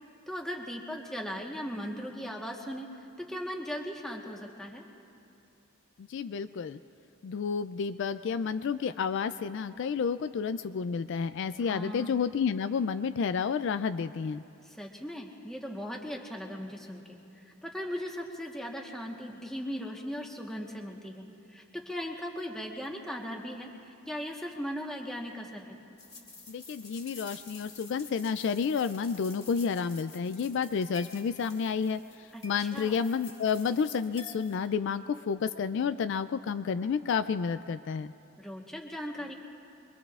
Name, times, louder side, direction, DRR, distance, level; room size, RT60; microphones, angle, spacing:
voice 1, 0.3-4.9 11.7-12.2 14.6-25.8 32.3-33.0 38.4-39.3, equal, ahead, -1 dB, 1.2 m, -38 dB
voice 2, 6.0-6.8 7.2-14.4 26.5-38.1, left 6 dB, 55° left, 11 dB, 0.3 m, -30 dB
sound 1, 26.0-34.7, left 3 dB, 20° left, 1.9 m, -50 dB
26.0 x 22.5 x 2.4 m, 2.7 s
head